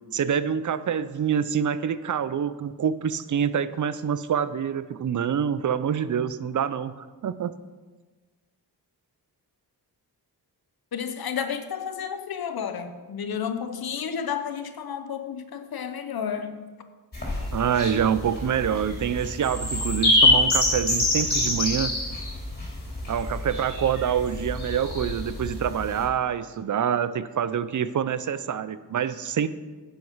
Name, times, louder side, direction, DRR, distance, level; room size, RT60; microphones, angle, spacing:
voice 1, 0.1-7.5 17.5-21.9 23.1-29.5, right 8 dB, 50° right, 14 dB, 0.6 m, -26 dB
voice 2, 10.9-16.6, left 7 dB, 65° left, 8 dB, 1.0 m, -31 dB
sound 1, 17.1-26.0, left 2 dB, 25° left, 3.4 m, -25 dB
10.5 x 8.0 x 5.6 m, 1.3 s
wide cardioid pair, 95°, 39 cm